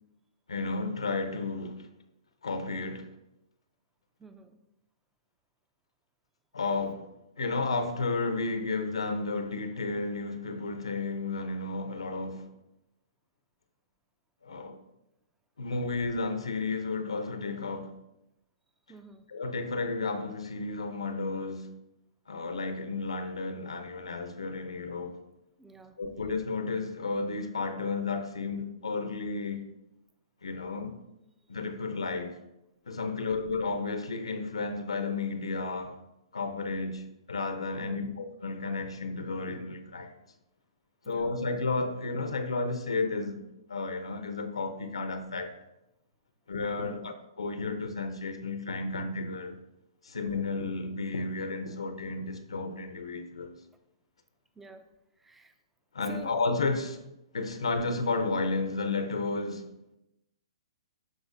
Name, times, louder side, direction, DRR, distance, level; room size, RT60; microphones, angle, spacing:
voice 1, 0.5-1.9 2.4-3.1 6.5-7.1 7.4-12.5 14.4-14.8 15.6-17.9 19.3-21.7 22.3-25.2 26.0-29.7 30.4-30.9 31.5-32.4 32.9-36.0 36.3-40.1 41.0-45.5 46.5-49.5 50.0-53.5 55.9-57.0 57.3-59.7, left 3 dB, 85° left, 0.9 m, -32 dB
voice 2, 4.2-4.6 18.9-19.3 25.6-26.0 33.2-33.4 37.8-38.2 41.0-41.4 46.8-47.1 54.6-54.9 55.2-55.5 56.0-56.3, right 4 dB, 10° right, 0.6 m, -49 dB
13.0 x 4.8 x 2.7 m
hypercardioid pair, 130°, 3 cm